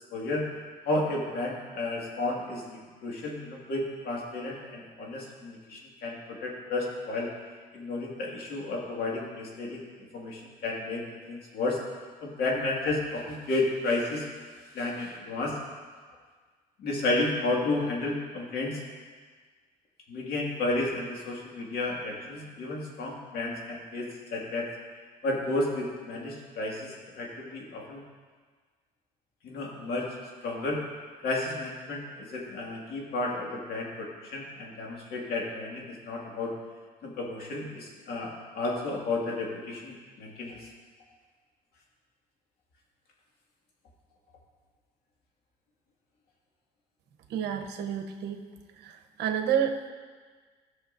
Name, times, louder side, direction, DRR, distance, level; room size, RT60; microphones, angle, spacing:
voice 1, 0.1-0.4 0.9-7.3 7.7-9.8 10.1-11.0 11.3-11.8 12.2-14.3 14.7-15.6 16.8-18.8 20.1-24.7 25.2-28.0 29.4-30.1 30.4-30.8 31.2-36.5 37.0-40.6, left 2 dB, 65° left, -2 dB, 2.0 m, -32 dB
voice 2, 47.3-48.4 48.8-49.9, right 8 dB, 80° right, 5 dB, 0.9 m, -30 dB
15.0 x 6.4 x 2.6 m, 1.5 s
cardioid pair, 110°, 17 cm